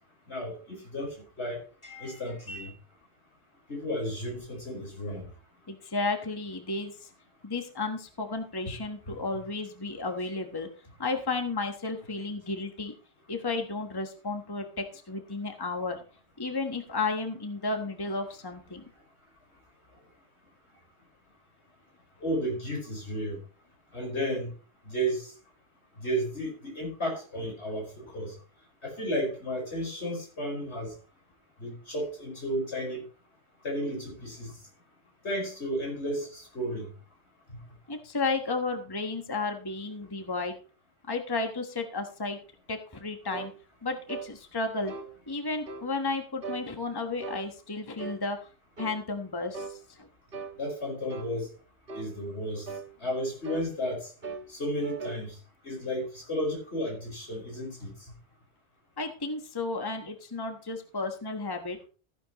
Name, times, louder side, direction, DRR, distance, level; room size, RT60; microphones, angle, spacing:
voice 1, 0.3-2.7 3.7-5.3 22.2-23.4 23.9-24.5 24.8-25.3 26.0-28.3 28.8-30.9 31.6-33.0 33.6-34.5 35.2-36.9 37.5-37.6 50.6-51.5 51.9-52.7 53.0-54.1 54.5-55.4 55.6-58.1, equal, 80° left, 0 dB, 5.4 m, -33 dB
voice 2, 5.7-7.1 7.4-10.7 11.0-12.9 13.3-16.0 16.4-18.8 37.9-40.6 41.0-42.4 42.7-43.5 43.8-44.9 45.3-48.5 48.8-50.1 59.0-61.8, left 3 dB, 20° left, 5 dB, 1.3 m, -33 dB
sound 1, 43.3-43.6 44.1-44.3 44.9-45.1 45.7-45.9 46.4-46.7 47.2-47.5 48.0-48.2 48.8-49.0 49.5-49.8 50.3-50.6 51.1-51.3 51.9-52.1 52.6-52.9 53.4-53.7 54.2-54.5 54.8-55.3, right 4 dB, 60° right, 1.5 m, -39 dB
14.5 x 10.5 x 3.0 m, 0.35 s
omnidirectional pair, 1.1 m